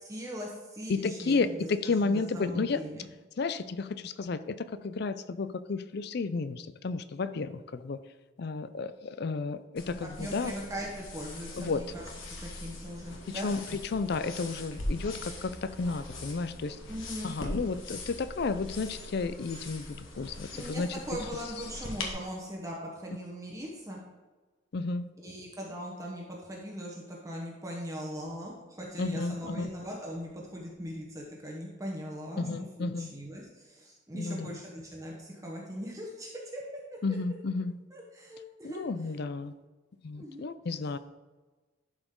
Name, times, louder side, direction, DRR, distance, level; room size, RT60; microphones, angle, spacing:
voice 1, 0.0-3.1 10.0-13.5 16.9-17.3 20.5-24.0 25.2-32.5 32.8-36.6 36.9-37.0 37.9-38.8 40.2-40.5, equal, 15° right, -3 dB, 1.1 m, -40 dB
voice 2, 0.9-2.8 3.4-4.6 4.8-8.0 8.4-10.5 11.6-11.8 13.3-16.8 17.2-21.0 24.7-25.1 29.0-29.7 32.4-33.1 34.2-34.6 37.0-37.7 38.6-39.5 40.0-41.0, left 4 dB, 50° left, 13 dB, 0.4 m, -32 dB
sound 1, 9.8-22.1, left 2 dB, 75° left, 1.5 m, -41 dB
11.5 x 5.0 x 3.8 m, 1.2 s
head